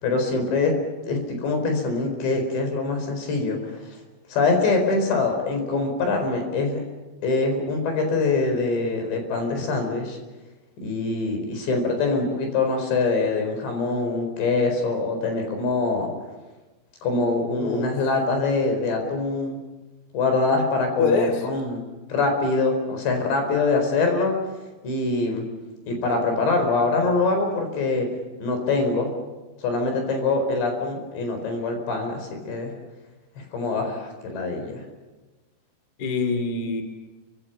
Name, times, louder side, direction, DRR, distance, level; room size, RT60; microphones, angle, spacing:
voice 1, 0.0-0.7 1.1-3.8 4.3-6.8 7.2-10.2 10.8-16.1 17.0-19.6 20.1-21.8 22.1-24.3 24.8-25.4 25.9-28.1 28.4-29.1 29.6-32.7 33.4-34.8, left 3 dB, 60° left, 4 dB, 6.5 m, -24 dB
voice 2, 17.6-17.9 21.0-21.4 36.0-36.8, left 4 dB, 30° left, 7 dB, 2.2 m, -24 dB
30.0 x 25.0 x 5.8 m, 1.2 s
omnidirectional pair, 5.6 m